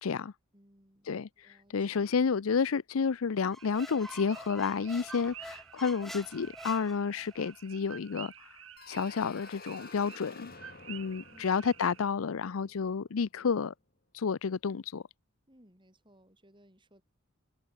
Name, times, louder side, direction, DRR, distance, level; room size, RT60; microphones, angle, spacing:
voice 1, 0.0-0.3 1.1-1.3 1.7-8.5 8.9-10.5 10.9-13.7 14.1-15.0, left 5 dB, 85° left, 0.5 m, -30 dB
voice 2, 0.5-2.0 11.3-11.6 12.6-12.8 15.5-17.0, equal, 25° right, 6.8 m, -62 dB
Squeak, 3.4-7.5, equal, ahead, 0.4 m, -47 dB
sound 1, 3.6-12.0, right 10 dB, 75° right, 2.4 m, -50 dB
sound 2, 8.8-13.4, left 4 dB, 45° left, 3.5 m, -52 dB
head